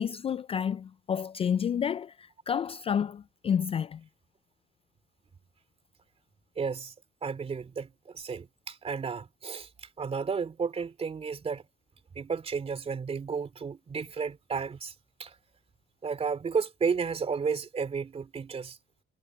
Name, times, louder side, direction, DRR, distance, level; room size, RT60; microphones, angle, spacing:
voice 1, 0.0-4.0, left 8 dB, 30° left, 0.3 m, -30 dB
voice 2, 6.6-6.9 7.2-11.6 12.1-14.9 15.2-15.4 16.0-18.8, right 5 dB, 30° right, 2.8 m, -32 dB
cardioid pair, 120°, 20 cm